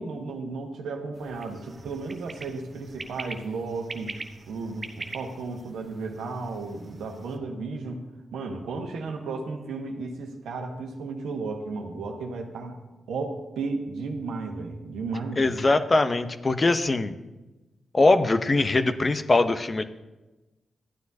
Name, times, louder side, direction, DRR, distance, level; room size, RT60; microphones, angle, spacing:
voice 1, 0.0-4.1 4.5-8.0 8.3-12.8 13.1-15.5, right 3 dB, 80° right, 3 dB, 1.2 m, -34 dB
sound 1, 1.1-7.4, right 3 dB, 45° right, 0.9 m, -43 dB
voice 2, 15.4-17.1 17.9-19.8, left 2 dB, 40° left, 11 dB, 0.6 m, -22 dB
14.0 x 9.4 x 2.7 m, 1.1 s
supercardioid pair, 40°, 0 cm